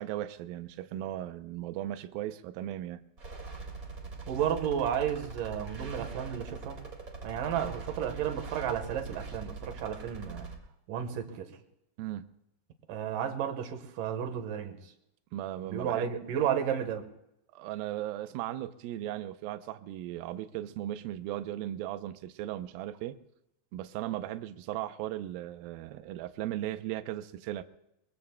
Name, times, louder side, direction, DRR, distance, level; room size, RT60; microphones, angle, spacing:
voice 1, 0.0-3.0 12.0-12.3 15.3-16.1 17.5-23.2 23.7-27.6, right 13 dB, 90° right, 10 dB, 2.1 m, -37 dB
sound 1, 3.2-10.5, right 3 dB, 45° right, 1.1 m, -43 dB
voice 2, 4.3-6.8 7.2-10.5 10.9-11.5 12.9-14.8 15.6-17.1, right 9 dB, 65° right, 6 dB, 2.4 m, -32 dB
23.0 x 22.5 x 2.2 m, 0.84 s
omnidirectional pair, 4.9 m